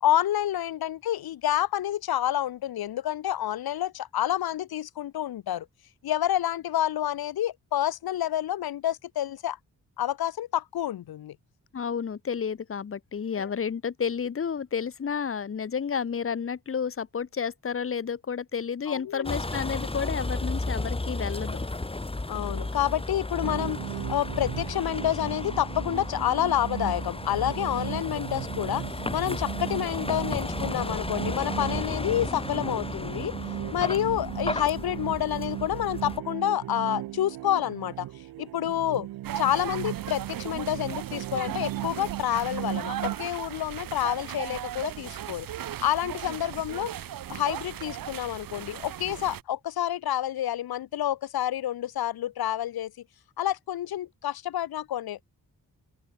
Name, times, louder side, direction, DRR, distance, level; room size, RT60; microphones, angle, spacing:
voice 1, 0.0-5.7 6.0-9.6 10.0-11.4 13.4-13.5 18.9-19.3 22.3-23.8 24.1-28.8 29.1-33.3 33.7-38.1 38.4-39.1 39.4-45.5 45.8-46.9 47.3-52.9 53.4-55.3, left 12 dB, 85° left, 1.0 m, -28 dB
voice 2, 11.7-21.6, left 6 dB, 35° left, 0.9 m, -31 dB
Vehicle, 19.2-36.2, left 2 dB, 15° left, 1.6 m, -34 dB
sound 1, 23.4-43.2, right 15 dB, 90° right, 0.5 m, -37 dB
sound 2, 39.2-49.4, right 10 dB, 65° right, 0.9 m, -37 dB
open air
cardioid pair, 80°, 36 cm